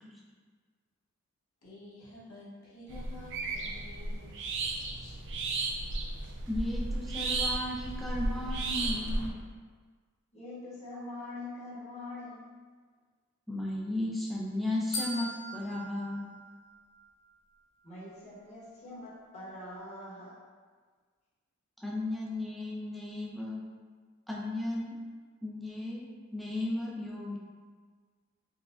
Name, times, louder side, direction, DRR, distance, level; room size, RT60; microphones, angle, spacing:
voice 1, 1.6-5.1, left 2 dB, 85° left, -7 dB, 1.0 m, -51 dB
sound 1, 2.9-9.3, right 2 dB, 60° right, 0.4 m, -34 dB
voice 2, 6.5-9.3 13.5-16.3 21.8-23.6 24.3-25.0 25.4-27.4, left 1 dB, ahead, -5 dB, 0.4 m, -35 dB
voice 3, 10.3-12.6 17.8-20.3, left 2 dB, 30° left, -8 dB, 1.0 m, -44 dB
sound 2, 14.9-17.2, left 1 dB, 65° left, 0.8 m, -40 dB
4.6 x 2.1 x 2.4 m, 1.5 s
head